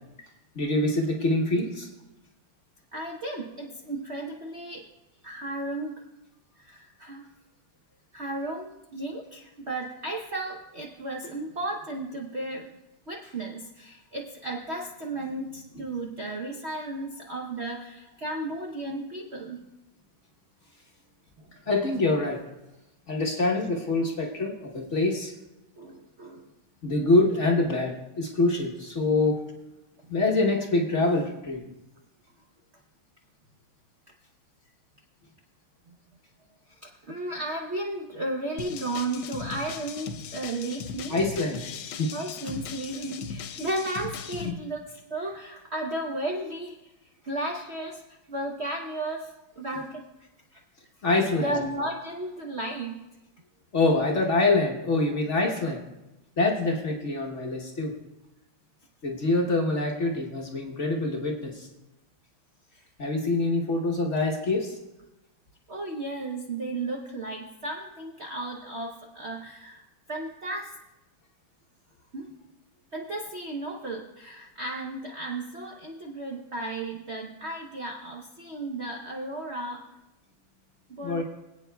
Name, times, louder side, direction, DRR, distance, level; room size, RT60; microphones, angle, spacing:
voice 1, 0.5-1.9 15.7-15.9 21.7-22.4 23.1-25.3 26.8-29.4 30.1-31.6 41.1-42.1 44.4-44.5 51.0-51.5 53.7-55.8 56.4-57.9 59.0-61.7 63.0-64.7 81.0-81.2, left 2 dB, 45° left, 0 dB, 1.2 m, -25 dB
voice 2, 2.9-4.9 5.2-6.0 6.6-7.2 8.1-12.8 13.1-19.6 21.4-21.5 23.4-23.6 25.8-26.5 36.7-41.2 42.1-46.9 47.2-50.1 50.5-50.6 51.4-53.0 62.7-62.8 65.7-69.8 70.1-70.7 72.1-72.3 72.9-79.9 80.9-81.2, right 2 dB, 55° right, 0 dB, 0.8 m, -34 dB
sound 1, 38.6-44.5, left 6 dB, 80° left, 1.4 m, -38 dB
25.5 x 8.5 x 2.3 m, 0.98 s
omnidirectional pair, 2.2 m